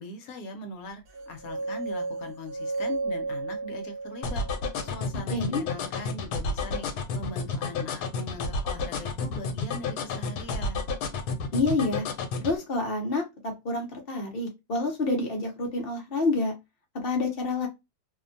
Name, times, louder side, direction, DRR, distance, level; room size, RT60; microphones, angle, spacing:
voice 1, 0.0-4.4 4.8-6.9 7.1-10.9, left 2 dB, 70° left, 1.0 m, -41 dB
sound 1, 1.1-5.2, right 3 dB, 75° right, 1.1 m, -34 dB
sound 2, 4.2-12.5, left 4 dB, 85° left, 1.2 m, -30 dB
voice 2, 5.3-5.6 11.5-12.0 12.4-13.2 13.6-16.5 16.9-17.7, left 2 dB, 50° left, 0.7 m, -28 dB
2.8 x 2.1 x 2.4 m
omnidirectional pair, 1.7 m